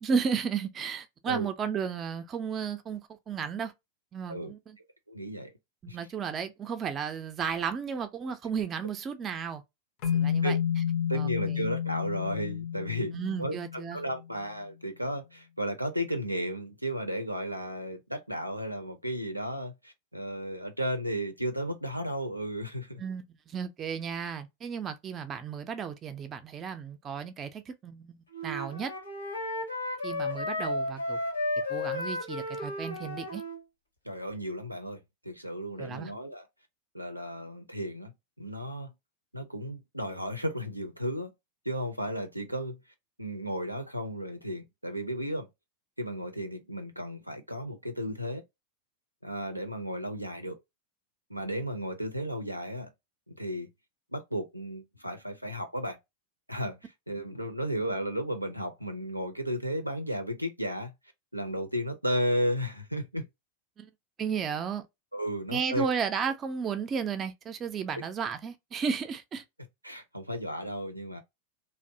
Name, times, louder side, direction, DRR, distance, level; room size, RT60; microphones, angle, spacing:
voice 1, 0.0-3.7 4.1-4.8 5.8-9.6 10.1-10.6 11.1-11.6 13.1-14.0 23.0-28.9 30.0-31.2 31.7-33.4 35.8-36.1 63.8-63.9 64.2-64.8 65.5-69.4, right 6 dB, 25° right, 0.4 m, -33 dB
voice 2, 5.1-5.5 5.9-6.0 10.4-10.6 11.1-23.0 34.1-36.4 36.9-38.9 39.3-41.3 41.7-42.8 43.2-45.5 46.0-48.4 49.2-50.6 51.3-52.9 53.3-53.7 54.1-56.0 56.5-60.9 61.3-63.3 65.1-65.9 67.9-68.0 69.8-71.2, equal, 90° right, 0.4 m, -34 dB
sound 1, 10.0-14.3, left 9 dB, 45° left, 0.5 m, -30 dB
Wind instrument woodwind instrument, 28.3-33.6, left 2 dB, 85° left, 0.8 m, -33 dB
2.6 x 2.0 x 2.5 m
figure-of-eight pair, 90°, 0 cm